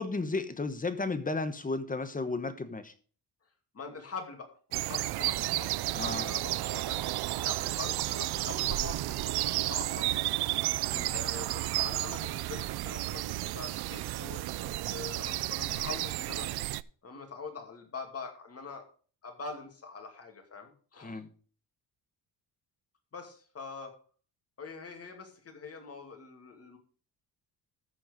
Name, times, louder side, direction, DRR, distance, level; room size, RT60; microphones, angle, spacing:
voice 1, 0.0-2.9 5.9-6.3 10.9-11.1 21.0-21.3, left 3 dB, 20° left, 10 dB, 1.1 m, -34 dB
voice 2, 3.7-5.7 6.0-10.3 11.1-16.5 17.0-18.9 19.2-21.2 23.1-24.0 24.6-26.8, left 4 dB, 35° left, 4 dB, 2.6 m, -44 dB
sound 1, 4.7-16.8, right 16 dB, 70° right, 0.5 m, -32 dB
14.0 x 4.7 x 5.2 m, 0.41 s
cardioid pair, 100°, 41 cm